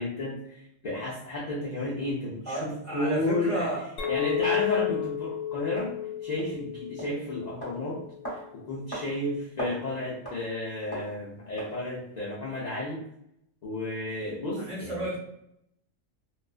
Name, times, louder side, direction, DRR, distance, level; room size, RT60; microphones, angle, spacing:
voice 1, 0.0-3.7 4.1-5.9 6.2-8.0 8.3-13.0 13.6-15.1, left 1 dB, 65° left, -5 dB, 0.4 m, -32 dB
voice 2, 2.5-3.8 14.6-15.2, right 2 dB, 45° right, -4 dB, 0.7 m, -32 dB
Chink clink, 4.0-8.5, left 11 dB, 90° left, 1.0 m, -32 dB
sound 1, 4.7-4.8 5.8-5.9 6.4-6.5 7.0-7.1 7.6-7.8 8.2-8.4 8.9-9.1 9.4-9.8 10.2-10.4 10.9-11.1 11.6-11.8, right 1 dB, 30° left, 0.9 m, -37 dB
2.3 x 2.3 x 2.3 m, 0.77 s
omnidirectional pair, 1.3 m